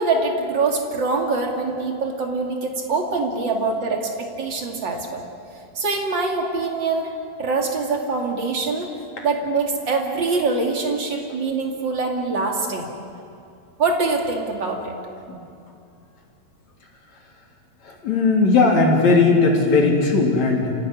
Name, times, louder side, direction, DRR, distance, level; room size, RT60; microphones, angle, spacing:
voice 1, 0.0-5.2 5.7-7.1 7.4-8.9 9.2-12.9 13.8-14.9, right 3 dB, 35° right, 2 dB, 2.4 m, -24 dB
voice 2, 17.8-20.7, left 3 dB, 45° left, -1 dB, 4.4 m, -18 dB
27.5 x 16.5 x 10.0 m, 2.5 s
omnidirectional pair, 4.9 m